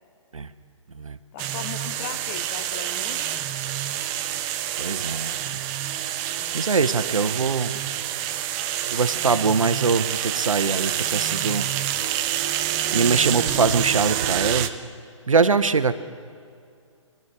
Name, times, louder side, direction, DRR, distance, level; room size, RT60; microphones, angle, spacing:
voice 1, 1.3-3.5 6.4-7.3, left 10 dB, 30° left, 11 dB, 0.6 m, -39 dB
sound 1, 1.4-14.7, right 11 dB, 25° right, 0.6 m, -27 dB
voice 2, 4.8-5.4 6.5-7.7 8.0-8.1 8.9-11.7 12.2-12.5 12.9-14.7 15.3-15.9, right 4 dB, 90° right, 11 dB, 0.8 m, -23 dB
22.5 x 12.0 x 4.7 m, 2.3 s
figure-of-eight pair, 135°, 17 cm